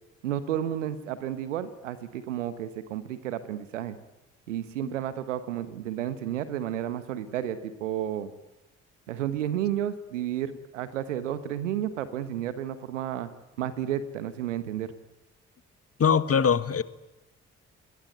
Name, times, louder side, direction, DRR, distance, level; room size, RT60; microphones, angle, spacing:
voice 1, 0.2-4.0 4.5-8.3 9.1-13.3 13.6-14.9, right 11 dB, 85° right, 13 dB, 1.3 m, -32 dB
voice 2, 16.0-16.8, left 7 dB, 40° left, 15 dB, 1.6 m, -22 dB
29.0 x 21.5 x 9.2 m, 1.0 s
figure-of-eight pair, 40°, 36 cm